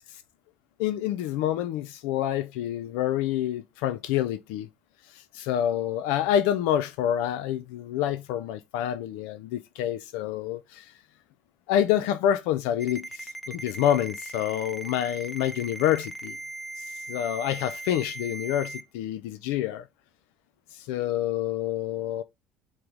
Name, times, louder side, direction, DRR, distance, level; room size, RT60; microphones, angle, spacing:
voice 1, 0.8-4.7 5.1-10.9 11.7-16.4 16.8-19.8 20.7-22.2, left 11 dB, 80° left, 0.4 m, -27 dB
Ringtone, 12.8-18.8, right 2 dB, ahead, 0.5 m, -39 dB
4.9 x 2.0 x 4.7 m
supercardioid pair, 110°, 3 cm